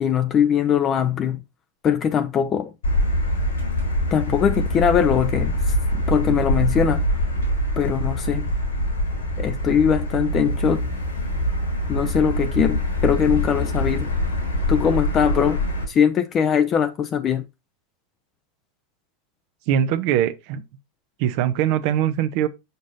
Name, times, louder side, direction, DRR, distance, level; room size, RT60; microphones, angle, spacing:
voice 1, 0.0-1.4 1.8-2.7 4.1-7.0 7.8-8.5 9.4-10.9 11.9-14.1 14.7-17.4, left 8 dB, 35° left, 0.5 m, -21 dB
Motor vehicle (road), 2.8-15.8, left 1 dB, 85° left, 4.1 m, -24 dB
voice 2, 19.7-20.6 21.2-22.5, right 10 dB, 55° right, 0.6 m, -22 dB
6.6 x 6.1 x 2.7 m
figure-of-eight pair, 85°, 0 cm